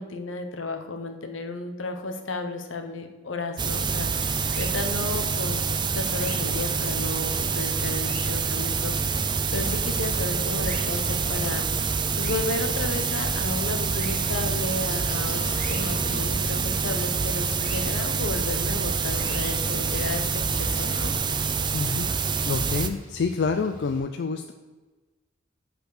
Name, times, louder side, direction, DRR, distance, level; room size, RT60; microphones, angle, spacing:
voice 1, 0.0-5.6 5.9-11.6 12.2-20.3 20.6-21.4, left 2 dB, 80° left, 6 dB, 1.0 m, -33 dB
sound 1, 3.6-22.9, right 5 dB, 25° right, 0.4 m, -26 dB
Buzz, 4.4-24.0, left 1 dB, 40° left, 2.0 m, -43 dB
sound 2, 4.5-4.7 6.1-6.4 7.9-8.2 10.6-10.8 12.2-12.5 13.9-14.1 15.6-15.8 17.6-17.8 19.2-19.5, left 1 dB, 10° left, 1.9 m, -40 dB
voice 2, 21.7-22.1 22.4-24.5, left 4 dB, 60° left, 7 dB, 0.4 m, -27 dB
8.0 x 4.5 x 6.5 m, 1.3 s
head